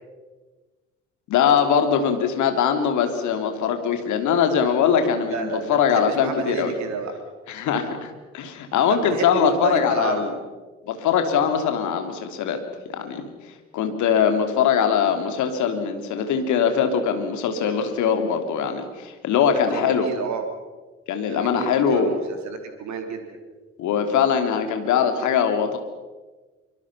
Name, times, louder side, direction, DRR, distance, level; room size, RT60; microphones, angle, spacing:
voice 1, 1.3-6.7 7.5-10.3 10.9-12.6 12.9-13.3 13.7-20.1 21.1-22.1 23.8-25.8, left 7 dB, 55° left, 6 dB, 2.9 m, -22 dB
voice 2, 5.2-7.1 8.9-10.2 19.5-20.5 21.2-23.2, right 6 dB, 50° right, 5 dB, 3.3 m, -30 dB
24.5 x 24.5 x 5.8 m, 1.3 s
figure-of-eight pair, 50°, 36 cm